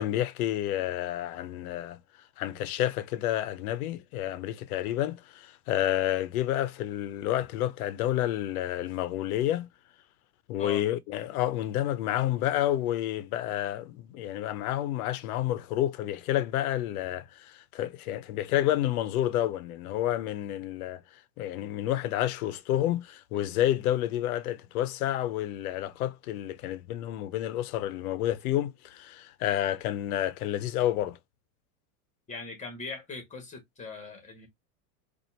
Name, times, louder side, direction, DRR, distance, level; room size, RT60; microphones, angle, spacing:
voice 1, 0.0-2.0 2.4-9.7 10.5-21.0 21.4-31.2, left 13 dB, 75° left, 0.7 m, -29 dB
voice 2, 32.3-34.5, left 3 dB, 15° left, 1.5 m, -40 dB
4.1 x 2.5 x 2.8 m
supercardioid pair, 140°, 45 cm